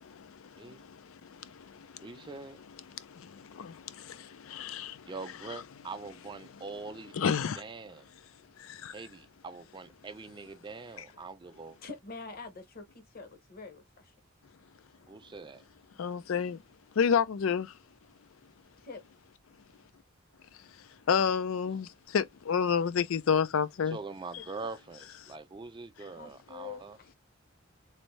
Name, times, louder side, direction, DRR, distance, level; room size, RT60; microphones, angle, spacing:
voice 1, 0.0-2.1 2.9-5.1 7.1-7.6 8.6-9.0 16.0-16.6 17.0-17.7 21.1-24.0, left 7 dB, 85° left, 0.4 m, -30 dB
voice 2, 2.0-2.6 5.1-8.1 8.9-11.8 15.1-15.6 23.9-27.0, right 4 dB, 25° right, 0.4 m, -43 dB
voice 3, 10.9-11.2 11.8-14.1 18.8-19.0 24.4-24.8 26.2-27.2, left 4 dB, 50° left, 0.9 m, -46 dB
3.3 x 2.6 x 3.1 m
head